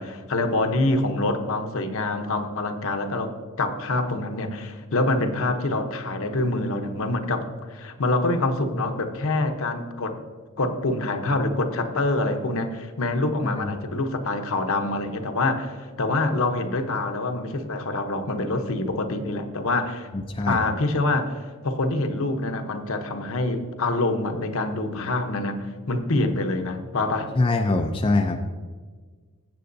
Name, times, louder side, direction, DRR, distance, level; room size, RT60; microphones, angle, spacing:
voice 1, 0.0-10.2 10.6-20.1 20.5-27.3, left 2 dB, 65° left, 6 dB, 0.9 m, -26 dB
voice 2, 20.1-20.6 27.4-28.4, left 2 dB, 25° left, 4 dB, 0.4 m, -23 dB
16.5 x 7.6 x 2.6 m, 1.5 s
head